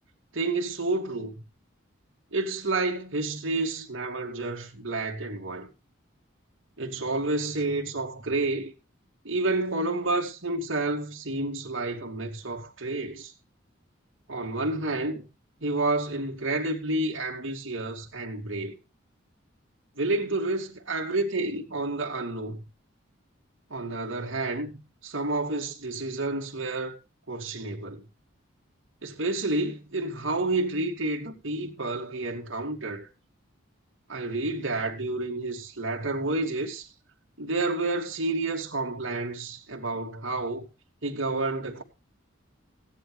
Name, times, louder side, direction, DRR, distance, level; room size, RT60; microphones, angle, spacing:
voice 1, 0.3-1.4 2.3-5.7 6.8-8.7 9.2-13.3 14.3-15.3 15.6-18.7 20.0-22.6 23.7-26.9 27.3-28.0 29.0-33.1 34.1-36.9 37.4-40.7 41.0-41.8, right 2 dB, 70° right, 2.6 m, -30 dB
16.5 x 11.0 x 3.4 m
head